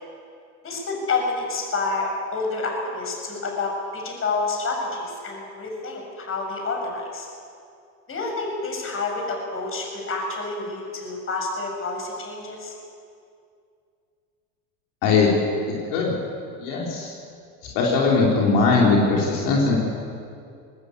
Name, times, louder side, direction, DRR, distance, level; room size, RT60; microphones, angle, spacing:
voice 1, 0.6-7.3 8.1-12.7, left 3 dB, 30° left, 1 dB, 7.5 m, -28 dB
voice 2, 15.0-15.3 15.7-16.1 16.6-17.1 17.7-19.8, left 4 dB, 65° left, -3 dB, 4.6 m, -20 dB
21.0 x 19.5 x 8.5 m, 2.4 s
supercardioid pair, 110°, 42 cm